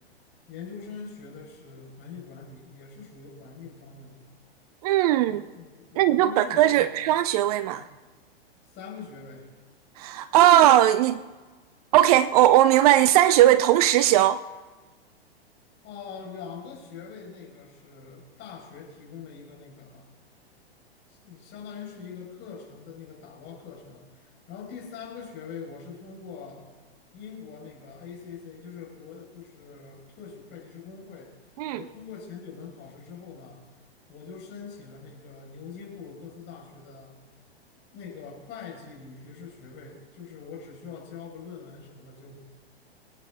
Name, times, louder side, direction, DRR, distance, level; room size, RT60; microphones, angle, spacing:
voice 1, 0.5-4.4 5.3-7.1 7.7-7.9 8.7-9.5 15.8-20.1 21.1-26.7 27.1-31.3 31.7-33.6 34.1-37.2 37.9-42.4, left 6 dB, 35° left, 5.4 m, -43 dB
voice 2, 4.8-5.4 6.0-7.9 10.0-11.2 11.9-14.4 31.6-31.8, right 13 dB, 35° right, 0.5 m, -19 dB
24.5 x 9.2 x 3.7 m
hypercardioid pair, 115°, 32 cm